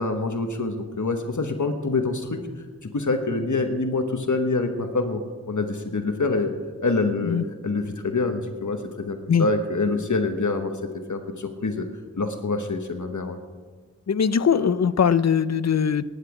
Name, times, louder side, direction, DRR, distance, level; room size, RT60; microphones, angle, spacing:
voice 1, 0.0-2.4 2.8-5.2 5.5-6.5 6.8-7.4 7.6-10.7 11.1-11.9 12.2-13.4, left 3 dB, 85° left, 6 dB, 1.1 m, -26 dB
voice 2, 14.1-16.0, left 7 dB, 65° left, 16 dB, 0.5 m, -21 dB
19.0 x 9.8 x 4.9 m, 1.4 s
wide cardioid pair, 55°, 29 cm